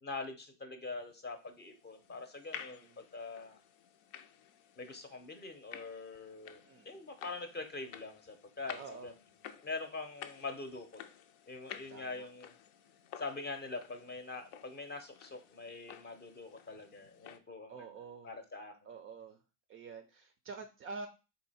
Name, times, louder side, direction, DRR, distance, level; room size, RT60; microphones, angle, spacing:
voice 1, 0.0-3.6 4.8-9.1 9.6-11.0 11.5-12.6 13.2-17.9 18.2-18.7, left 3 dB, 25° left, 7 dB, 0.7 m, -44 dB
sound 1, 1.4-17.4, left 9 dB, 65° left, 0.6 m, -52 dB
voice 2, 2.6-3.0 6.7-7.0 8.8-9.1 11.9-12.3 17.7-18.3 18.8-19.4 19.7-21.1, right 4 dB, 30° right, 6 dB, 0.4 m, -47 dB
3.8 x 2.8 x 4.1 m, 0.31 s
supercardioid pair, 110°, 43 cm